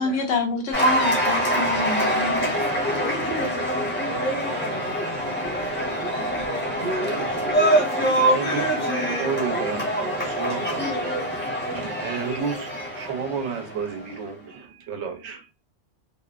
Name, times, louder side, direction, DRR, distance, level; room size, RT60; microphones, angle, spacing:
voice 1, 0.0-2.4, left 3 dB, 75° left, 1.0 m, -27 dB
Cheering / Applause, 0.7-14.1, right 1 dB, 10° left, 0.6 m, -24 dB
voice 2, 1.9-3.5 4.0-6.4, right 2 dB, 40° right, 1.0 m, -40 dB
voice 3, 6.6-15.5, right 6 dB, 70° right, 0.9 m, -33 dB
2.6 x 2.0 x 2.3 m
omnidirectional pair, 1.3 m